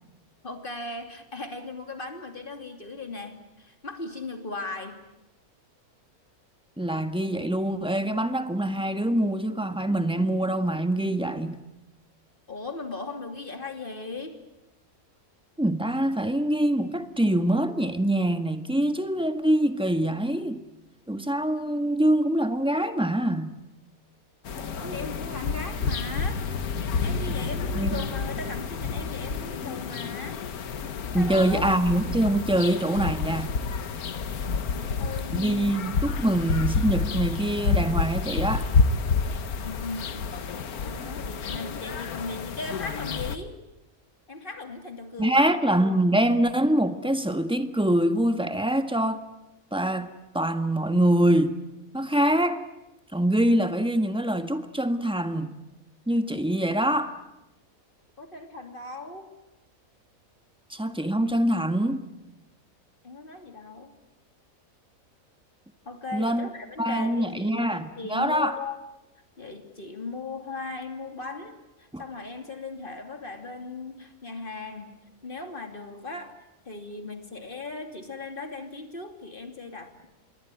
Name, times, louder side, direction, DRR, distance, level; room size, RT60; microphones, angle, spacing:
voice 1, 0.4-5.0 12.5-14.4 24.5-26.4 27.0-30.4 31.2-31.6 34.5-35.7 39.6-40.4 40.7-43.6 44.3-45.5 58.2-59.3 63.0-63.9 65.8-68.8 69.4-75.0 75.2-76.3 76.6-80.1, left 3 dB, 35° left, 2.9 m, -38 dB
voice 2, 6.8-11.6 15.6-20.6 21.1-23.6 27.7-28.0 31.1-33.5 35.3-38.7 45.2-49.2 49.7-50.1 50.3-51.6 51.9-52.6 53.1-55.6 56.1-57.2 60.7-62.1 66.1-66.5 66.8-68.6 71.9-72.0, right 1 dB, 5° right, 1.4 m, -24 dB
sound 1, 24.5-43.4, left 5 dB, 90° left, 1.7 m, -29 dB
27.5 x 22.5 x 9.1 m
omnidirectional pair, 1.5 m